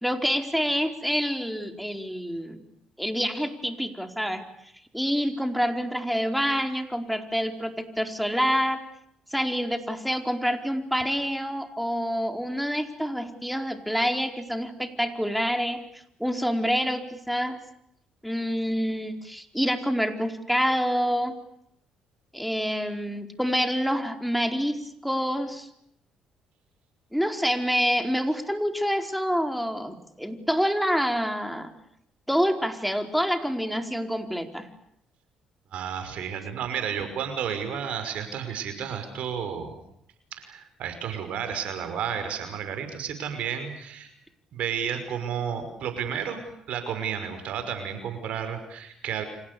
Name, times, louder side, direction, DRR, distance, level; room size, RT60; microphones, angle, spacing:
voice 1, 0.0-2.6 3.0-4.4 4.9-8.8 9.3-17.6 18.2-21.4 22.3-24.8 25.0-25.7 27.1-31.7 32.3-34.7, equal, ahead, 6 dB, 4.6 m, -27 dB
voice 2, 35.7-39.8 40.3-44.1 44.5-46.4 46.7-49.3, right 8 dB, 65° right, 8 dB, 5.7 m, -32 dB
29.0 x 26.5 x 7.0 m, 0.74 s
hypercardioid pair, 55°, 2 cm